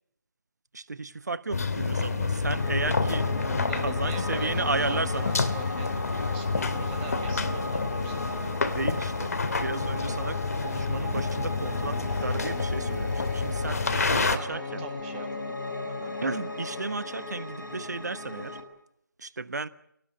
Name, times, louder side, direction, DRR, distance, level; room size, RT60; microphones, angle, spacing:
voice 1, 0.7-3.3 3.8-5.3 8.7-14.8 16.2-18.6 19.2-19.7, right 3 dB, 55° right, 1.2 m, -34 dB
sound 1, 1.5-14.4, left 4 dB, 50° left, 2.4 m, -29 dB
Piano, 2.5-18.6, left 2 dB, 75° left, 7.3 m, -36 dB
voice 2, 3.7-6.0 6.3-8.2 14.3-15.5 15.9-16.1, right 5 dB, 15° right, 2.0 m, -43 dB
sound 2, 4.1-10.3, left 4 dB, 30° left, 3.7 m, -43 dB
29.5 x 18.5 x 9.3 m
figure-of-eight pair, 155°, 11 cm